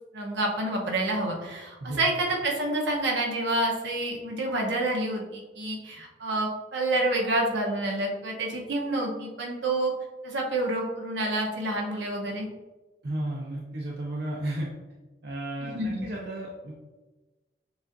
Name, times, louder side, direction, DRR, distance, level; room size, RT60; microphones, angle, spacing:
voice 1, 0.1-9.9 10.2-12.5 15.6-16.1, right 1 dB, 80° right, -1 dB, 0.9 m, -28 dB
voice 2, 13.0-14.7 15.2-16.7, right 1 dB, 60° right, -3 dB, 0.6 m, -33 dB
6.8 x 2.5 x 2.5 m, 1.2 s
head